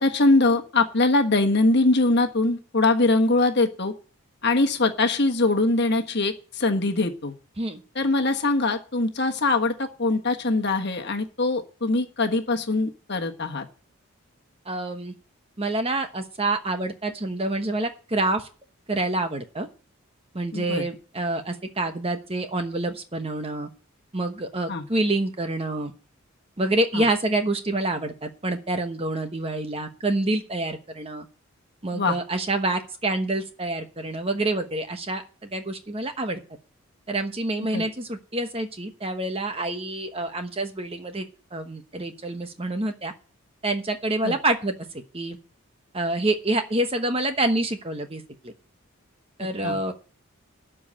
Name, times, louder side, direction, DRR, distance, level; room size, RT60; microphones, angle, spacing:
voice 1, 0.0-3.9 4.4-7.3 7.9-13.6 20.5-20.8 24.7-24.8 26.9-27.0 31.9-32.2 37.7-37.8 44.2-44.3 49.6-49.8, left 2 dB, 50° left, 5 dB, 1.4 m, -22 dB
voice 2, 14.7-15.1 15.6-18.5 18.9-19.7 20.3-23.7 24.1-25.9 26.6-31.3 31.8-36.4 37.1-41.3 41.5-43.1 43.6-44.7 45.1-45.4 45.9-48.5 49.4-49.9, right 2 dB, 25° right, 7 dB, 1.0 m, -27 dB
12.5 x 4.9 x 8.6 m, 0.38 s
head